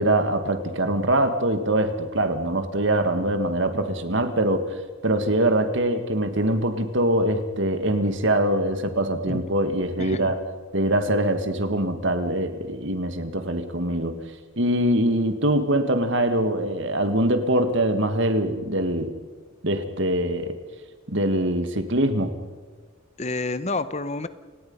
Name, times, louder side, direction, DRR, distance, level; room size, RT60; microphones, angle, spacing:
voice 1, 0.0-10.4 10.7-14.2 14.6-19.1 19.6-20.6 21.1-22.3, right 1 dB, 60° right, 9 dB, 1.9 m, -23 dB
voice 2, 10.0-10.3 23.2-24.3, left 3 dB, 30° left, 13 dB, 0.9 m, -29 dB
29.5 x 18.5 x 5.6 m, 1.4 s
head